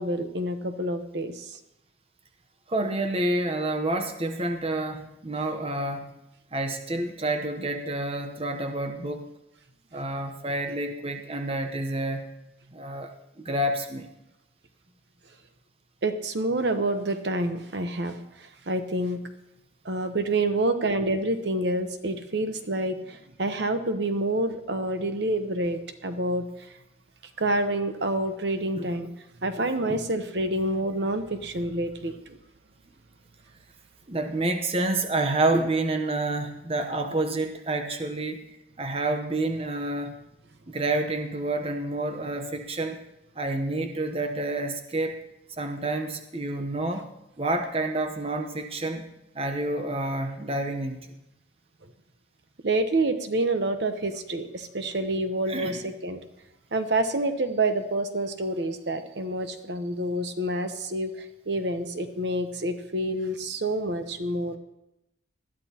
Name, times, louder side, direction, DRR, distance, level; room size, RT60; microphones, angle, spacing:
voice 1, 0.0-1.4 16.0-18.2 18.7-19.2 19.8-26.4 27.4-29.1 29.4-32.1 52.6-56.2 56.7-64.6, right 1 dB, 60° right, 7 dB, 1.0 m, -28 dB
voice 2, 2.7-6.1 6.5-9.2 9.9-12.3 12.7-13.1 13.4-14.1 28.8-28.9 29.9-30.0 34.1-38.4 38.8-40.1 40.7-43.0 43.4-45.2 45.6-47.1 47.4-49.0 49.3-51.0 55.5-55.8, right 2 dB, 30° right, 5 dB, 0.9 m, -28 dB
20.0 x 13.0 x 2.9 m, 0.89 s
head